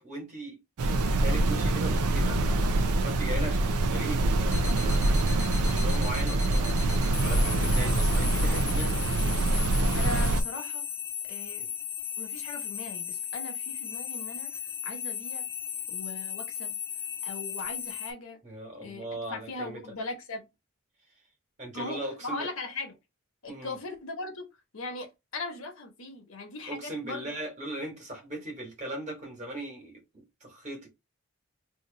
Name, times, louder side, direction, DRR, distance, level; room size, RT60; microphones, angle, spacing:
voice 1, 0.0-2.6 3.0-5.3 5.6-6.8 7.2-8.9 18.4-19.8 21.6-22.5 23.5-23.7 26.7-30.9, right 1 dB, 30° right, 1.4 m, -38 dB
sound 1, 0.8-10.4, right 2 dB, 85° right, 0.5 m, -25 dB
sound 2, 4.5-18.1, left 8 dB, 10° left, 0.6 m, -36 dB
voice 2, 9.9-10.9 11.3-11.7 12.2-15.5 15.9-16.8 17.2-18.4 18.8-20.4 21.7-22.9 23.4-24.5 24.7-27.3, left 2 dB, 70° left, 1.0 m, -39 dB
2.8 x 2.5 x 3.8 m
head